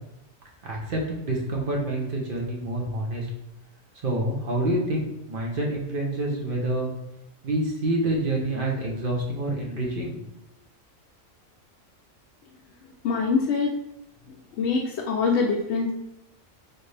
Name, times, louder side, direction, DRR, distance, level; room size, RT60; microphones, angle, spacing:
voice 1, 0.6-3.3 4.0-6.9 7.4-10.2, right 1 dB, 50° right, -1 dB, 0.8 m, -27 dB
voice 2, 13.0-13.7 14.6-15.9, left 4 dB, 65° left, -1 dB, 0.8 m, -24 dB
4.3 x 3.3 x 3.2 m, 0.87 s
omnidirectional pair, 1.3 m